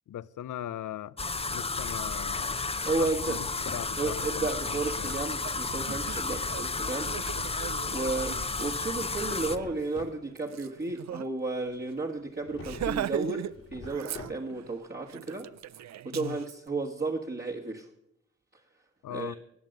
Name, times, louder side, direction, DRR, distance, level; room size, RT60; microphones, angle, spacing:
voice 1, 0.1-1.2 1.5-2.6 3.0-4.5 5.0-5.2 16.1-16.4 19.0-19.3, left 11 dB, 80° left, 0.6 m, -39 dB
sound 1, 1.2-9.6, left 3 dB, 20° left, 0.6 m, -32 dB
Drawer open or close, 1.6-2.5 2.9-4.0 7.6-8.7 9.1-10.2 12.4-13.1 13.4-14.7, left 3 dB, 45° left, 1.7 m, -46 dB
voice 2, 2.8-3.4 4.0-7.2 7.9-15.5 16.0-17.9 19.1-19.4, right 3 dB, 35° right, 1.5 m, -33 dB
Laughter, 4.2-4.3 4.6-11.3 11.6-11.7 12.0-12.2 12.6-13.5 13.8-14.7 15.1-16.6, right 11 dB, 65° right, 0.4 m, -39 dB
19.5 x 7.4 x 6.5 m
cardioid pair, 85°, 30 cm